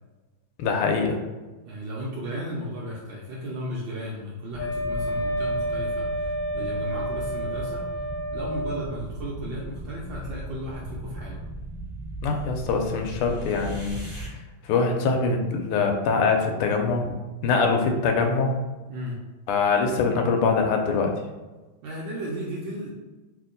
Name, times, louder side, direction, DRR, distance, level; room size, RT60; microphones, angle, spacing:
voice 1, 0.6-1.2 12.2-14.0 14.6-17.1 17.4-18.5 19.5-21.1, left 4 dB, 90° left, 3 dB, 1.5 m, -23 dB
voice 2, 1.7-7.8 8.3-11.4 17.4-17.6 18.9-19.2 21.8-22.9, equal, 70° right, -4 dB, 1.3 m, -34 dB
sound 1, 4.5-14.3, right 1 dB, 15° right, 0.6 m, -38 dB
Wind instrument woodwind instrument, 4.6-8.8, right 1 dB, 70° left, 1.3 m, -29 dB
3.5 x 2.8 x 3.8 m, 1.2 s
omnidirectional pair, 2.4 m